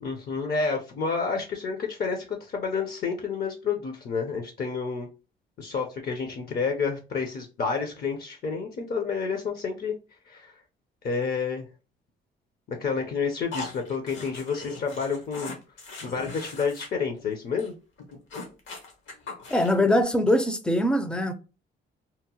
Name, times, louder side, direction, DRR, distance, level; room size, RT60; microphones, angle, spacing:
voice 1, 0.0-5.1 5.6-9.9 10.3-10.5 11.0-11.7 12.7-15.6 16.0-17.7, left 5 dB, 50° left, 0.6 m, -29 dB
sound 1, 13.5-16.9 17.2-17.3 17.6-17.7 18.0-19.9, left 3 dB, 75° left, 0.9 m, -40 dB
voice 2, 19.5-21.3, left 1 dB, 5° left, 0.4 m, -22 dB
2.8 x 2.0 x 2.8 m
cardioid pair, 90°, 20 cm